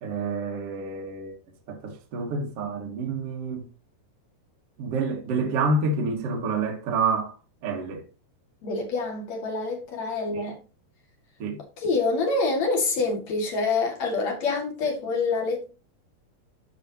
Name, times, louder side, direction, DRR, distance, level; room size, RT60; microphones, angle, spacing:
voice 1, 0.0-1.3 1.7-3.7 4.8-7.3 7.6-8.0 10.3-10.4 11.4-11.6, right 3 dB, 45° right, 2.1 m, -28 dB
voice 2, 8.6-10.6 11.8-15.7, left 3 dB, 45° left, 2.7 m, -26 dB
12.5 x 5.4 x 2.9 m
omnidirectional pair, 5.1 m